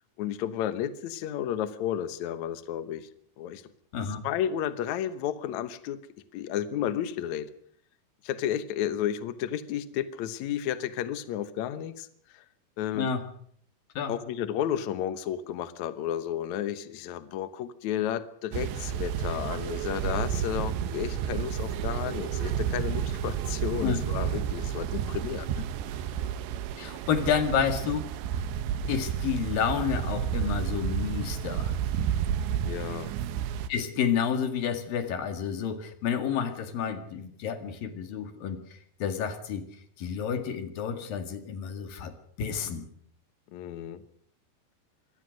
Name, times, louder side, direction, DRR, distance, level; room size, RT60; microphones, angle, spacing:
voice 1, 0.2-3.1 3.4-3.6 4.1-6.0 6.3-7.5 8.2-12.4 12.8-13.1 14.1-25.5 32.6-33.1 43.5-44.0, left 10 dB, 90° left, 12 dB, 1.6 m, -32 dB
sound 1, 18.5-33.7, right 9 dB, 80° right, 3.3 m, -31 dB
voice 2, 26.8-28.1 28.9-31.7 33.7-38.6 39.0-39.7 40.0-42.9, left 7 dB, 60° left, 8 dB, 3.3 m, -30 dB
24.0 x 18.0 x 6.4 m, 0.62 s
omnidirectional pair, 5.1 m